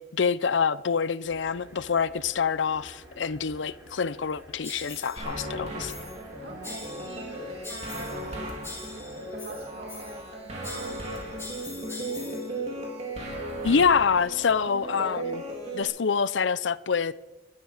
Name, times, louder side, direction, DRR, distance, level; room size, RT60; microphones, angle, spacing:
voice 1, 0.0-5.9 13.6-15.4 15.7-17.1, left 6 dB, 85° left, 0.6 m, -26 dB
sound 1, 1.2-11.5, equal, 15° right, 4.6 m, -51 dB
sound 2, 4.6-5.3 5.9-6.3 6.6-7.3 7.6-8.3 8.6-10.3 10.6-12.5, left 3 dB, 15° left, 4.5 m, -43 dB
sound 3, 5.2-15.8, right 1 dB, 35° right, 3.9 m, -36 dB
voice 2, 6.4-8.8 9.2-12.4, right 1 dB, 70° right, 2.1 m, -46 dB
22.5 x 12.5 x 5.0 m
head